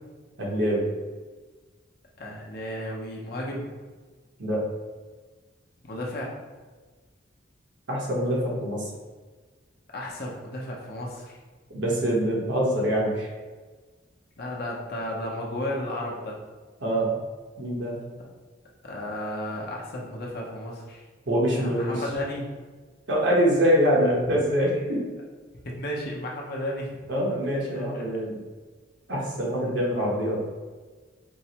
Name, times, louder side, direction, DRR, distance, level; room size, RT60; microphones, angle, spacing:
voice 1, 0.4-0.9 4.4-4.6 7.9-8.9 11.7-13.3 16.8-17.2 17.6-18.0 21.3-22.0 23.1-25.1 27.1-28.4 29.1-30.4, equal, 80° right, -4 dB, 1.0 m, -24 dB
voice 2, 2.2-3.7 5.8-6.4 9.9-11.4 14.4-16.4 18.8-21.1 21.5-22.5 25.6-27.0 27.9-28.0, left 1 dB, 55° left, -2 dB, 0.7 m, -33 dB
4.5 x 2.1 x 2.9 m, 1.4 s
head